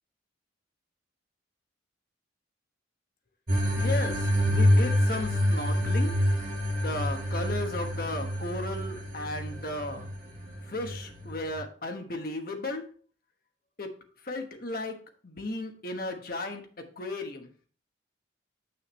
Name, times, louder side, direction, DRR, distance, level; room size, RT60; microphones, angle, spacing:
sound 1, 3.5-11.5, left 1 dB, 45° right, 2.8 m, -27 dB
voice 1, 3.8-4.1 4.5-6.1 6.8-10.1 10.7-12.8 13.8-13.9 14.3-15.0 15.2-16.6 17.0-17.5, left 2 dB, 50° left, 4 dB, 1.2 m, -34 dB
7.9 x 6.4 x 3.1 m, 0.43 s
head